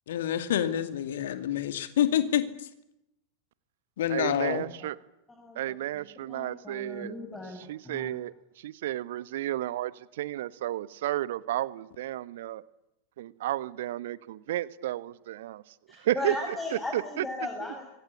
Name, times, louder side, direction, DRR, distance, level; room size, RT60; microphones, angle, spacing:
voice 1, 0.1-2.4 4.0-4.7, left 10 dB, 60° left, 10 dB, 2.4 m, -27 dB
voice 2, 4.1-5.0 5.5-7.2 7.5-12.6 13.2-17.2, right 14 dB, 55° right, 17 dB, 1.2 m, -33 dB
voice 3, 6.0-7.6 7.8-8.1 15.9-17.8, left 2 dB, 10° left, 2 dB, 6.7 m, -37 dB
26.0 x 24.0 x 8.6 m, 0.85 s
figure-of-eight pair, 90°, 0 cm